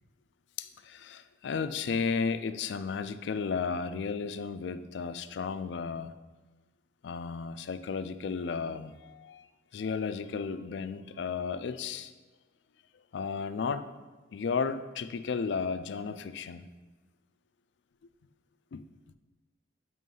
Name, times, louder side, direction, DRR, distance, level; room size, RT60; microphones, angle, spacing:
voice 1, 0.6-6.1 7.0-9.5 9.7-12.1 13.1-13.9 14.3-16.7 18.7-18.8, left 5 dB, 70° left, 11 dB, 0.4 m, -34 dB
9.2 x 3.1 x 5.4 m, 1.2 s
head